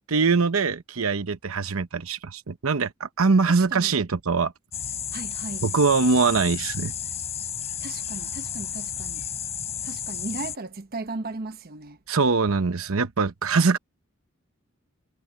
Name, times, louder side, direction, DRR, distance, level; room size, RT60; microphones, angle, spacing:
voice 1, 0.1-4.5 5.6-6.9 12.1-13.8, right 4 dB, 85° right, 0.9 m, -22 dB
voice 2, 3.4-3.9 5.1-5.6 7.8-9.2 9.8-12.0, right 3 dB, 45° right, 1.1 m, -36 dB
sound 1, 4.7-10.6, left 8 dB, 30° left, 5.1 m, -32 dB
head